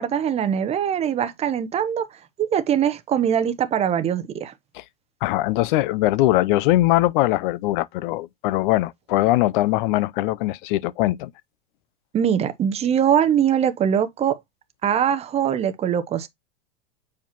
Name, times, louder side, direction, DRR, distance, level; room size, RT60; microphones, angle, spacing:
voice 1, 0.0-2.0 2.4-4.5 12.1-14.4 14.8-16.3, right 9 dB, 20° right, 0.8 m, -22 dB
voice 2, 5.2-11.3, left 17 dB, 55° left, 0.5 m, -21 dB
7.3 x 4.6 x 2.9 m
supercardioid pair, 135°, 30 cm